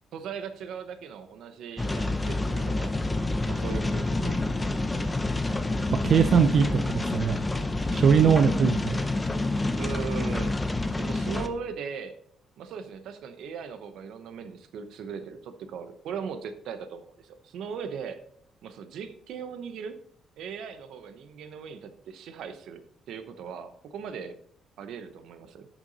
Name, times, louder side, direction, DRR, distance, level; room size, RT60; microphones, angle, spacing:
voice 1, 0.1-2.9 3.4-4.4 9.7-10.5 11.0-12.2 12.6-18.2 18.6-20.0 20.4-24.3 24.8-25.7, right 6 dB, 75° right, 10 dB, 0.9 m, -38 dB
sound 1, 1.8-11.5, left 2 dB, 10° left, 0.6 m, -28 dB
voice 2, 6.0-7.4 7.9-9.0, right 7 dB, 45° right, 8 dB, 0.5 m, -21 dB
10.5 x 6.1 x 4.0 m, 0.68 s
cardioid pair, 170°, 0 cm